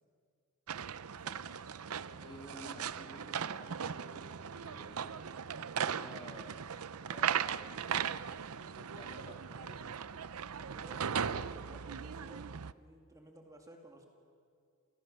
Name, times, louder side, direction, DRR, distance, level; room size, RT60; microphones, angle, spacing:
sound 1, 0.7-12.7, right 7 dB, 80° right, 0.6 m, -38 dB
voice 1, 1.0-1.6 2.2-5.2 5.6-6.6 7.0-8.2 8.5-9.9, equal, 20° left, 2 dB, 2.7 m, -54 dB
voice 2, 10.6-14.1, right 1 dB, 15° right, 1 dB, 2.6 m, -55 dB
30.0 x 28.0 x 6.8 m, 2.2 s
head